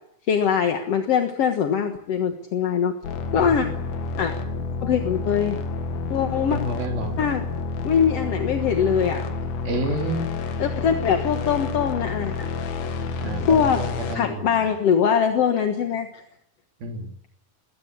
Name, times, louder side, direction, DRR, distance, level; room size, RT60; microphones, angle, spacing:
voice 1, 0.3-2.9 3.3-3.7 4.2-4.3 4.8-5.6 6.1-6.6 7.2-7.4 7.8-9.3 10.6-12.5 13.5-13.8 14.1-16.1, left 7 dB, 55° left, 5 dB, 1.9 m, -22 dB
sound 1, 3.0-14.1, left 4 dB, 75° left, 3.7 m, -29 dB
voice 2, 6.5-7.2 9.7-10.3 13.2-14.7 16.8-17.1, right 1 dB, 70° right, 4 dB, 5.3 m, -29 dB
21.5 x 19.5 x 8.5 m, 0.73 s
omnidirectional pair, 4.4 m